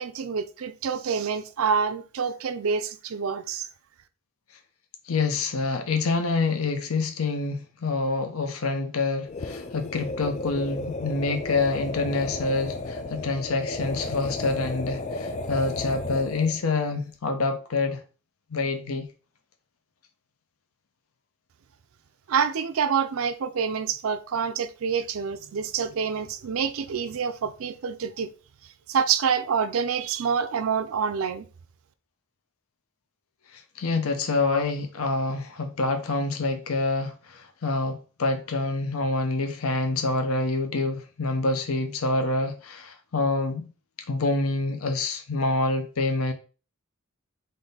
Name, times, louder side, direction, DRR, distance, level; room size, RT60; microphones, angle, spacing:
voice 1, 0.0-3.7 22.3-28.3 28.9-31.5, right 6 dB, 75° right, 0.4 m, -27 dB
voice 2, 5.1-18.0 18.5-19.1 33.5-43.7 44.1-46.3, left 3 dB, 80° left, 0.6 m, -27 dB
sound 1, 9.2-16.6, left 2 dB, 30° left, 0.3 m, -33 dB
3.6 x 2.6 x 3.9 m
head